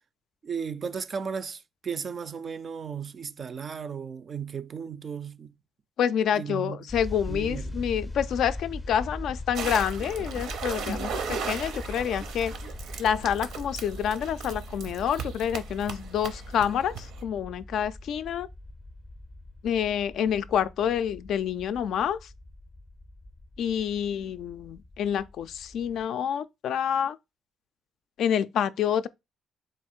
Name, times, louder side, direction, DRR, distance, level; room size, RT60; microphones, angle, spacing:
voice 1, 0.4-5.5 6.3-6.9 7.3-7.9, right 6 dB, 45° right, 0.3 m, -35 dB
voice 2, 6.0-12.5 13.0-18.5 19.6-22.3 23.6-27.2 28.2-29.1, left 9 dB, 75° left, 0.3 m, -28 dB
sound 1, 6.9-26.1, left 2 dB, 20° left, 0.5 m, -41 dB
sound 2, 9.5-17.2, right 6 dB, 85° right, 0.7 m, -37 dB
3.8 x 2.4 x 4.3 m
cardioid pair, 90°, 0 cm